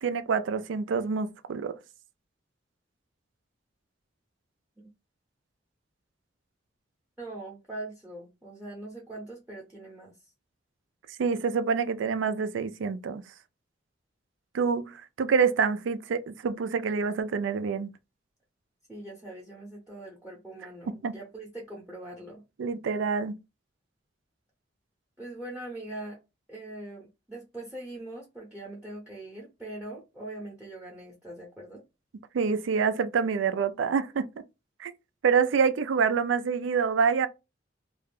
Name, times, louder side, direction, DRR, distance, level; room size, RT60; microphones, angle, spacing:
voice 1, 0.0-1.8 11.2-13.2 14.5-17.9 21.0-21.1 22.6-23.4 32.3-34.3 34.8-34.9 35.2-37.3, right 6 dB, 90° right, 0.4 m, -26 dB
voice 2, 7.2-10.1 18.9-22.4 25.2-26.2 26.5-31.8, right 1 dB, 5° right, 0.7 m, -42 dB
2.4 x 2.2 x 3.4 m
head